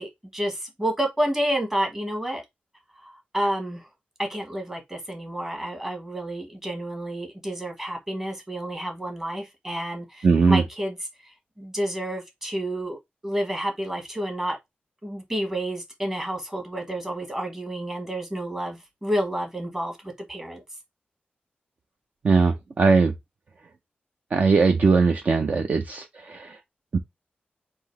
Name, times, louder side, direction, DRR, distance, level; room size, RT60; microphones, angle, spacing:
voice 1, 0.0-2.4 3.0-3.9 4.2-11.0 11.2-13.0 13.2-14.6 15.0-20.6, right 1 dB, 15° right, 1.3 m, -30 dB
voice 2, 10.2-10.6 22.2-23.1 24.3-26.0 26.3-26.4 26.9-27.0, right 4 dB, 50° right, 0.5 m, -19 dB
3.9 x 2.7 x 4.4 m
wide cardioid pair, 160°, 4 cm